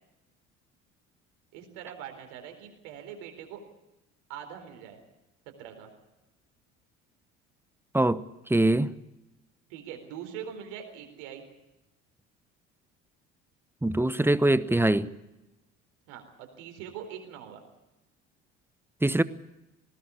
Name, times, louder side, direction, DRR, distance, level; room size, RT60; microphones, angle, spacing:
voice 1, 1.5-3.6 4.3-5.0 5.6-5.9 9.7-11.4 16.1-17.6, right 9 dB, 70° right, 4.2 m, -42 dB
voice 2, 8.5-8.9 13.8-15.1 19.0-19.2, right 1 dB, 5° right, 1.0 m, -23 dB
20.0 x 18.0 x 8.4 m
hypercardioid pair, 60°, 37 cm